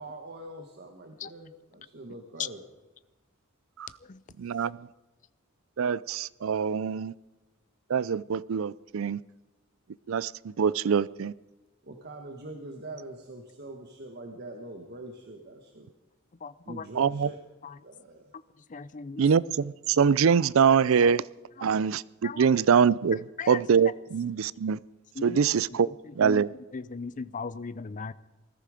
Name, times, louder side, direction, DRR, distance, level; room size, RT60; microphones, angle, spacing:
voice 1, 0.0-2.6 11.8-15.9 16.6-17.4 17.8-18.3, right 2 dB, 50° right, 3 dB, 1.4 m, -43 dB
voice 2, 4.4-4.9 5.8-7.1 7.9-9.2 10.1-11.3 17.0-17.3 19.2-21.2 21.6-23.2 23.5-24.8 25.2-25.9 26.2-26.5, right 6 dB, 65° right, 20 dB, 0.4 m, -24 dB
voice 3, 16.4-16.9 17.6-17.7 18.7-19.2 21.6-21.7 22.2-22.4 23.4-23.6 25.2-25.4 26.2-26.4 26.7-28.1, left 5 dB, 35° left, 17 dB, 0.5 m, -37 dB
20.0 x 13.5 x 5.0 m, 1.1 s
head